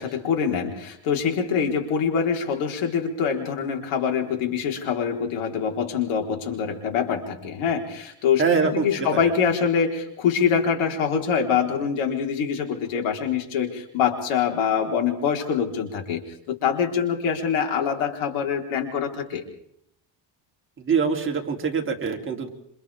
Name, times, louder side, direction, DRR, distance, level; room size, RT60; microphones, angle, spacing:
voice 1, 0.0-16.2 16.5-19.4, left 7 dB, 80° left, 2 dB, 4.4 m, -24 dB
voice 2, 8.4-9.2 20.8-22.5, right 5 dB, 25° right, 1 dB, 3.2 m, -24 dB
28.0 x 27.0 x 3.6 m, 0.73 s
cardioid pair, 145°, 48 cm